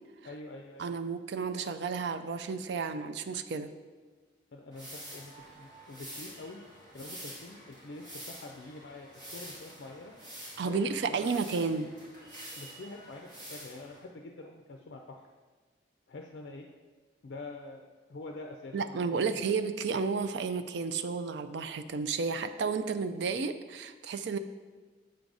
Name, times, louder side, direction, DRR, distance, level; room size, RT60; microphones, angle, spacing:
voice 1, 0.2-0.9 4.5-10.2 10.6-11.5 12.6-15.3 16.1-16.7 17.2-19.4, left 2 dB, 65° left, 2 dB, 0.4 m, -46 dB
voice 2, 0.8-3.7 10.6-11.9 18.7-24.4, right 5 dB, 65° right, 10 dB, 0.4 m, -32 dB
sound 1, 4.7-14.1, right 1 dB, 40° right, 1.7 m, -47 dB
6.7 x 3.9 x 4.7 m, 1.3 s
head